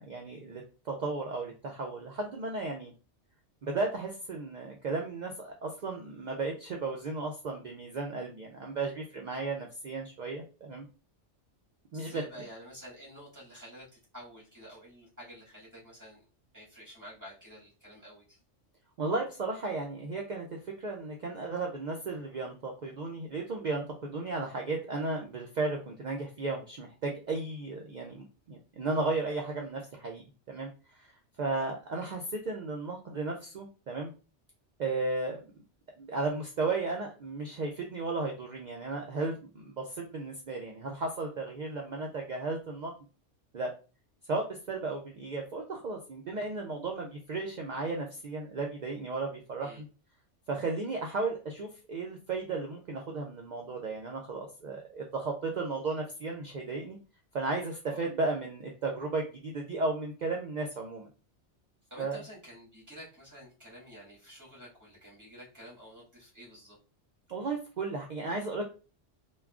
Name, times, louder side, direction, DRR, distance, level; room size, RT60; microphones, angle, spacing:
voice 1, 0.0-2.9 3.6-10.9 11.9-12.2 19.0-30.2 30.5-30.7 31.0-31.1 31.4-34.1 34.8-35.4 36.0-42.9 43.5-43.7 44.3-49.7 50.5-57.0 57.3-61.1 62.0-62.2 67.3-68.6, right 3 dB, 65° right, 1 dB, 0.4 m, -34 dB
voice 2, 11.9-16.3 16.5-18.4 49.6-49.8 57.8-58.1 61.9-66.8, equal, 15° right, -7 dB, 1.5 m, -50 dB
3.5 x 2.2 x 2.3 m, 0.34 s
omnidirectional pair, 1.2 m